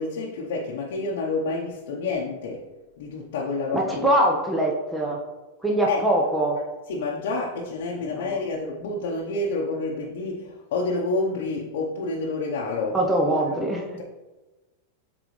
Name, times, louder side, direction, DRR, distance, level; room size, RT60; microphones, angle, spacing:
voice 1, 0.0-2.6 3.0-4.2 5.9-6.0 6.9-13.0, left 3 dB, 75° left, -2 dB, 0.8 m, -28 dB
voice 2, 3.7-5.2 5.6-6.6 8.1-8.4 12.9-13.9, right 1 dB, 5° right, -1 dB, 0.8 m, -23 dB
7.9 x 3.9 x 3.2 m, 1.1 s
supercardioid pair, 130°, 0 cm